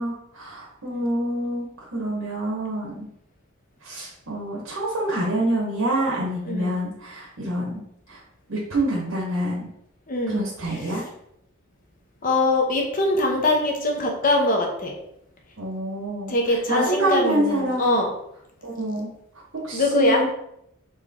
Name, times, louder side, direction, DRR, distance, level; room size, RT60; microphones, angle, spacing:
voice 1, 0.0-1.6 1.9-3.1 3.8-7.8 8.1-8.2 8.5-9.7 10.3-11.0 15.6-17.9 18.6-19.1 19.6-20.2, right 1 dB, 75° right, -5 dB, 1.2 m, -26 dB
voice 2, 6.5-6.8 10.1-10.7 12.2-15.0 16.3-18.1 19.7-20.2, left 2 dB, 40° left, 1 dB, 0.9 m, -22 dB
4.3 x 3.1 x 3.7 m, 0.76 s
head